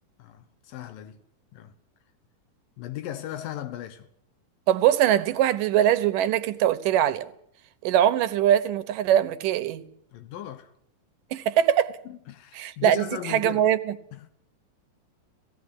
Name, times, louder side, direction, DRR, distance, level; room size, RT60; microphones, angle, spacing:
voice 1, 0.2-1.2 1.5-1.7 2.8-4.1 10.1-10.7 12.1-13.6 14.1-14.3, left 11 dB, 80° left, 2.8 m, -37 dB
voice 2, 4.7-7.3 7.8-9.8 11.3-11.9 12.5-14.0, right 11 dB, 75° right, 2.5 m, -22 dB
17.5 x 16.5 x 9.6 m
omnidirectional pair, 4.0 m